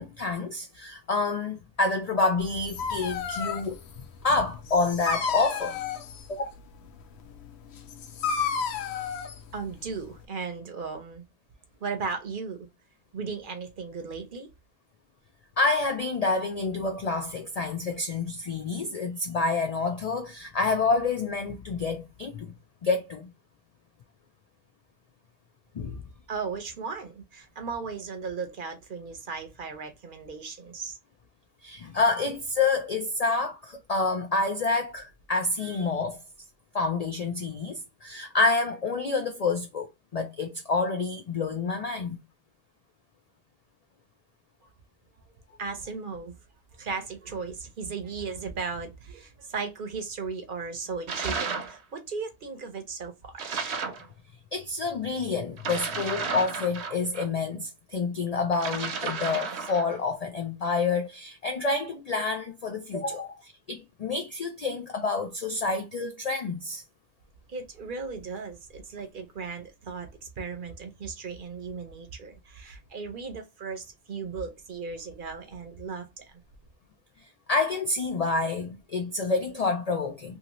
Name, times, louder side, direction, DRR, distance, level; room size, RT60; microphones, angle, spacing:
voice 1, 0.0-3.8 4.2-5.8 6.3-6.5 15.6-22.5 22.8-23.3 25.7-26.0 31.6-36.2 36.7-42.2 54.5-66.8 77.5-80.4, left 3 dB, 60° left, 0.4 m, -28 dB
Dog, 2.4-10.2, left 6 dB, 75° left, 0.8 m, -33 dB
voice 2, 9.5-11.2 11.8-12.7 13.1-14.5 26.3-31.0 45.3-46.3 46.7-53.6 67.5-76.4, right 5 dB, 55° right, 0.8 m, -36 dB
sound 1, 51.1-51.8 53.4-54.1 55.6-57.3 58.5-59.9, right 5 dB, 75° right, 1.0 m, -33 dB
2.7 x 2.7 x 2.9 m
omnidirectional pair, 1.1 m